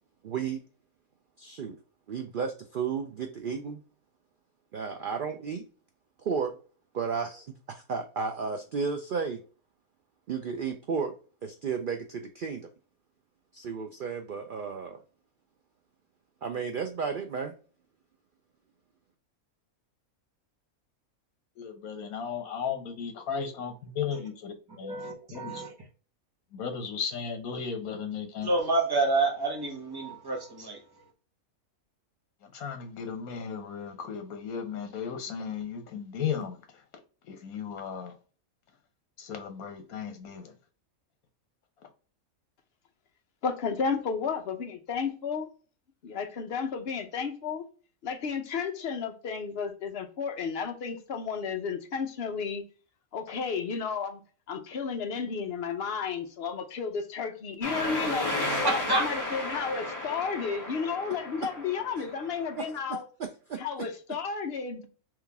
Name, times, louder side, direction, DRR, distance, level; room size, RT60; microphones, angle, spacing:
voice 1, 0.2-0.6 1.4-1.8 2.1-3.8 4.7-5.6 6.2-6.5 6.9-9.4 10.3-11.1 11.4-12.7 13.5-15.0 16.4-17.5 62.6-62.7 63.2-63.6, right 5 dB, 85° right, 0.4 m, -33 dB
voice 2, 21.6-25.0 25.3-25.6 26.5-28.5 32.4-36.8 37.3-38.1 39.2-40.5, left 7 dB, 80° left, 1.3 m, -35 dB
voice 3, 24.8-25.7 28.4-30.8 58.6-59.0, right 3 dB, 20° right, 0.9 m, -28 dB
voice 4, 43.4-45.5 46.0-47.7 48.0-52.6 53.1-54.2 54.5-58.3 58.6-63.1 63.6-64.9, left 5 dB, 50° left, 0.9 m, -32 dB
sound 1, 57.6-62.8, left 2 dB, 15° left, 1.4 m, -34 dB
3.7 x 3.0 x 3.4 m
omnidirectional pair, 1.5 m